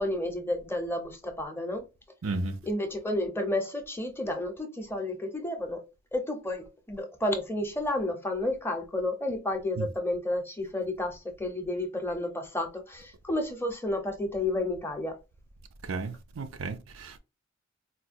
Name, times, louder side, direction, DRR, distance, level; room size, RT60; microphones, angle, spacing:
voice 1, 0.0-1.8 2.6-5.8 6.1-15.2, left 1 dB, 10° left, 0.6 m, -31 dB
voice 2, 2.2-2.6 9.8-9.9 15.9-17.2, right 3 dB, 80° right, 0.5 m, -33 dB
4.2 x 2.2 x 2.5 m
head